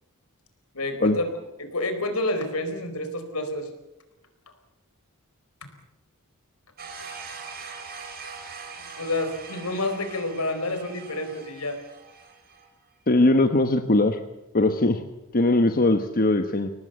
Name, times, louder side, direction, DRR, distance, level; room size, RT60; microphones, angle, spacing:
voice 1, 0.7-1.3 1.6-3.7 9.0-11.8, left 2 dB, 75° left, 8 dB, 4.4 m, -29 dB
sound 1, 6.8-12.7, right 5 dB, 45° right, 4.2 m, -42 dB
voice 2, 13.1-14.2 14.5-15.0 15.3-16.7, left 2 dB, 40° left, 7 dB, 1.1 m, -20 dB
23.0 x 19.0 x 8.1 m, 0.95 s
head